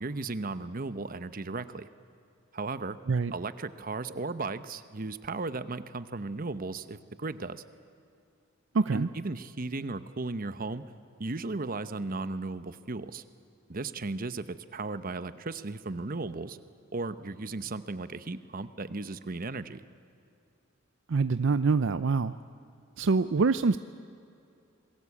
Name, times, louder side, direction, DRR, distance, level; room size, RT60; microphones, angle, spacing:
voice 1, 0.0-1.9 2.5-3.0 3.3-7.6 8.9-10.8 11.2-13.2 13.7-16.6 16.9-19.8, right 3 dB, 45° right, 13 dB, 0.9 m, -36 dB
voice 2, 8.7-9.1 21.1-22.4 23.0-23.8, right 4 dB, 65° right, 12 dB, 0.5 m, -25 dB
27.5 x 21.5 x 8.5 m, 2.6 s
head